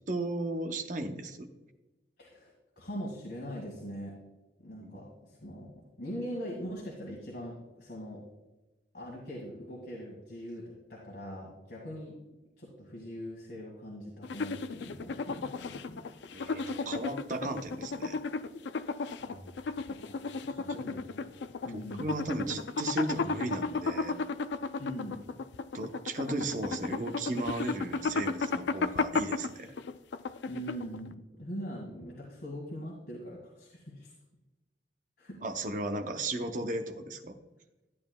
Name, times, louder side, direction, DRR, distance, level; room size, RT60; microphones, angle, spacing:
voice 1, 0.1-1.5 4.8-4.9 16.3-18.2 21.7-24.1 25.7-29.8 35.4-37.4, right 2 dB, 45° right, 5 dB, 0.7 m, -35 dB
voice 2, 2.2-4.2 4.6-8.2 8.9-12.2 12.6-16.0 19.2-22.1 24.8-25.2 30.4-34.1 35.2-35.4, equal, 60° left, -3 dB, 2.0 m, -42 dB
sound 1, 14.2-31.1, left 4 dB, 80° left, 0.4 m, -34 dB
12.5 x 9.0 x 2.3 m, 1.1 s
head